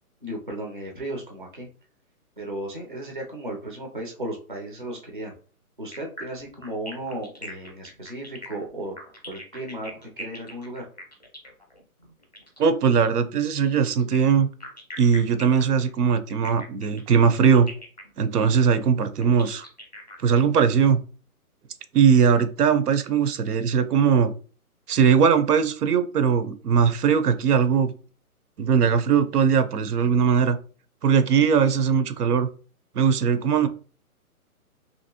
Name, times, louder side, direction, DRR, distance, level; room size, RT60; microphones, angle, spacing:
voice 1, 0.2-1.7 2.4-5.3 5.8-9.0 9.3-10.9, right 1 dB, 35° right, 0 dB, 0.4 m, -35 dB
sound 1, 5.9-12.7 13.9-20.6, equal, 30° left, 0.5 m, -42 dB
voice 2, 12.6-14.5 15.0-17.7 18.2-19.6 20.2-21.0 21.9-24.3 24.9-27.9 28.6-30.6 31.0-32.5 33.0-33.7, right 7 dB, 90° right, 10 dB, 0.6 m, -20 dB
2.9 x 2.6 x 2.8 m, 0.39 s
hypercardioid pair, 175°, 45 cm